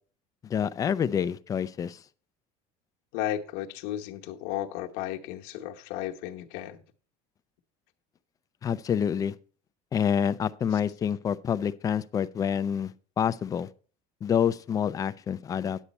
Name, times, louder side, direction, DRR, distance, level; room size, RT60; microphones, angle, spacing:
voice 1, 0.4-2.0 8.6-9.3 9.9-13.7 14.2-15.8, left 8 dB, 20° left, 0.3 m, -27 dB
voice 2, 3.1-6.8 10.7-10.8, left 12 dB, 75° left, 1.0 m, -34 dB
9.9 x 8.3 x 4.1 m
cardioid pair, 150°, 17 cm